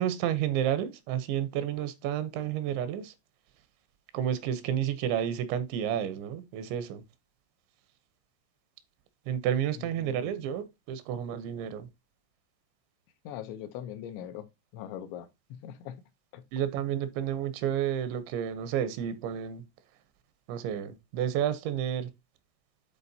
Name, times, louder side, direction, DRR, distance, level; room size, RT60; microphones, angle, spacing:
voice 1, 0.0-3.1 4.1-7.0 9.3-11.9 16.5-19.6 20.5-22.1, right 10 dB, 80° right, 3.1 m, -31 dB
voice 2, 9.8-10.5 13.2-16.0 16.3-16.4, left 10 dB, 80° left, 3.0 m, -42 dB
11.0 x 4.2 x 2.7 m
omnidirectional pair, 5.3 m